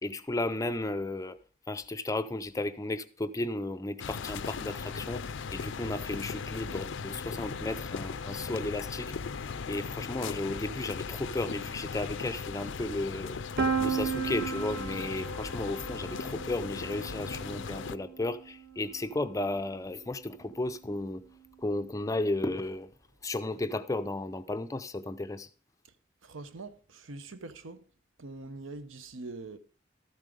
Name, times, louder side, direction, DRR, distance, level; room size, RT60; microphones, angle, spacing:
voice 1, 0.0-1.4 1.7-5.2 5.5-9.1 9.7-13.4 13.8-21.2 21.6-22.9 23.2-25.5, left 2 dB, 15° left, 0.4 m, -34 dB
sound 1, 4.0-18.0, left 5 dB, 70° left, 0.5 m, -38 dB
Piano, 13.6-19.3, right 6 dB, 50° right, 1.3 m, -35 dB
voice 2, 26.2-27.8 28.2-29.6, right 3 dB, 80° right, 0.8 m, -43 dB
13.0 x 7.5 x 5.0 m
head